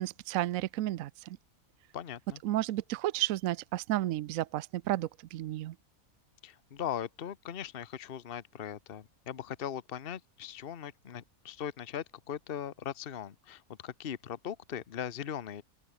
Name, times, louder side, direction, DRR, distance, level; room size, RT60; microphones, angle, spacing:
voice 1, 0.0-1.4 2.4-5.7, right 14 dB, 75° right, 1.0 m, -32 dB
voice 2, 1.9-2.4 6.4-15.6, left 9 dB, 45° left, 1.1 m, -39 dB
open air
omnidirectional pair, 1.5 m